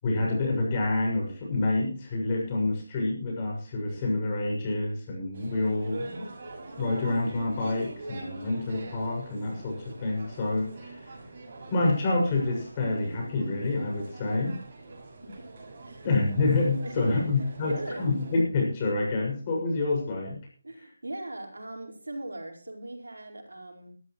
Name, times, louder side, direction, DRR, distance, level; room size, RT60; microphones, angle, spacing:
voice 1, 0.0-6.3 6.8-11.1 11.7-14.6 16.0-20.4, left 2 dB, 30° left, -1 dB, 6.6 m, -27 dB
sound 1, 5.3-18.4, right 2 dB, 45° right, 7.0 m, -44 dB
voice 2, 16.8-18.1 20.6-23.9, right 1 dB, 85° right, 0 dB, 5.0 m, -39 dB
20.0 x 13.0 x 3.2 m, 0.42 s
figure-of-eight pair, 160°, 0 cm